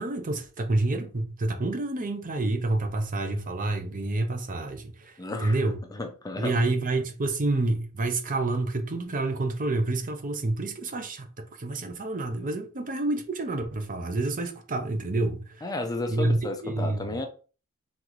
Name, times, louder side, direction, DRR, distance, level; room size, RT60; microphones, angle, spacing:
voice 1, 0.0-5.8 6.4-15.7 16.1-17.0, right 2 dB, 40° right, 0.7 m, -28 dB
voice 2, 5.2-5.6 5.9-6.5 15.6-17.3, left 2 dB, 15° left, 0.6 m, -32 dB
3.9 x 3.8 x 3.1 m
head